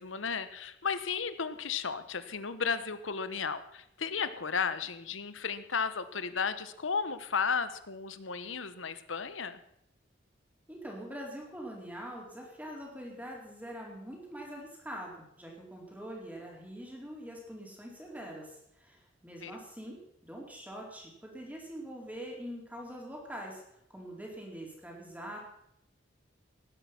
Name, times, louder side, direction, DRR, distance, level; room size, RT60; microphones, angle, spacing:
voice 1, 0.0-9.6 19.4-19.6, left 5 dB, 80° left, 13 dB, 1.1 m, -34 dB
voice 2, 10.7-20.0 20.2-23.6 23.9-25.4, equal, 10° right, -1 dB, 4.0 m, -44 dB
17.5 x 10.5 x 6.0 m, 0.78 s
head